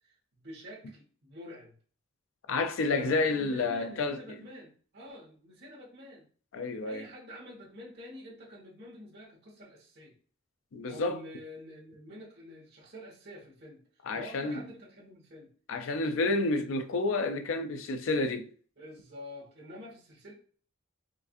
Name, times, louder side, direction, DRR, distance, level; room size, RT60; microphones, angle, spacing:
voice 1, 0.0-1.7 2.9-6.3 6.8-10.1 10.9-13.8 14.1-15.5 18.8-20.3, left 1 dB, 55° right, 1.4 m, -47 dB
voice 2, 2.5-4.2 6.5-7.0 10.7-11.2 14.0-14.6 15.7-18.5, left 3 dB, 90° left, 0.4 m, -30 dB
4.5 x 2.5 x 2.5 m
head